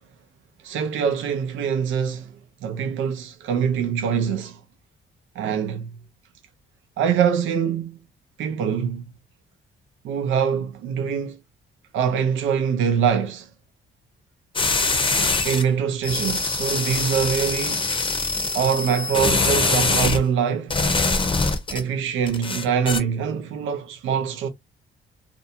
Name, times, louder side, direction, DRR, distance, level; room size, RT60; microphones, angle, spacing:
voice 1, 0.6-2.3 2.6-4.6 5.3-5.9 7.0-8.0 8.4-9.1 10.0-11.4 11.9-13.5 15.4-17.9 18.5-20.7 21.7-24.5, right 7 dB, 80° right, 0.6 m, -24 dB
sound 1, 14.6-15.6 16.0-20.2 20.7-21.8 22.3-23.0, left 3 dB, 25° left, 0.7 m, -23 dB
2.6 x 2.2 x 2.7 m
cardioid pair, 90°, 20 cm